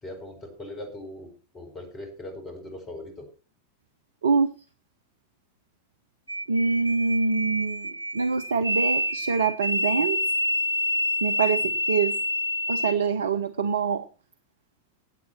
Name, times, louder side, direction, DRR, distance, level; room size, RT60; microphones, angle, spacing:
voice 1, 0.0-3.3, left 1 dB, 25° left, 5 dB, 4.5 m, -40 dB
sound 1, 6.3-12.9, left 1 dB, 85° left, 0.5 m, -27 dB
voice 2, 6.5-10.2 11.2-12.1 12.7-14.1, right 5 dB, 70° right, 12 dB, 0.7 m, -25 dB
16.0 x 8.3 x 4.4 m, 0.35 s
figure-of-eight pair, 90°, 0 cm